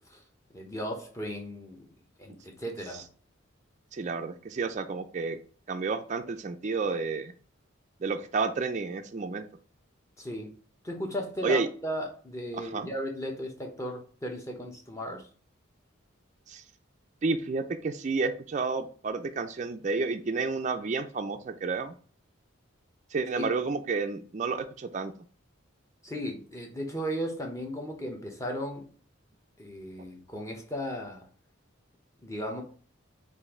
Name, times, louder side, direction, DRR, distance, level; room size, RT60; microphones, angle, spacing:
voice 1, 0.5-1.9 2.2-3.0 10.2-10.5 10.8-15.3 23.4-23.5 26.0-28.9 29.6-31.3 32.2-32.6, equal, 15° left, 0.9 m, -36 dB
voice 2, 3.9-5.4 5.7-7.3 8.0-9.5 11.4-11.7 12.5-12.9 16.5-16.6 17.2-21.9 23.1-25.1, right 4 dB, 35° right, 0.4 m, -30 dB
5.1 x 2.6 x 3.7 m
head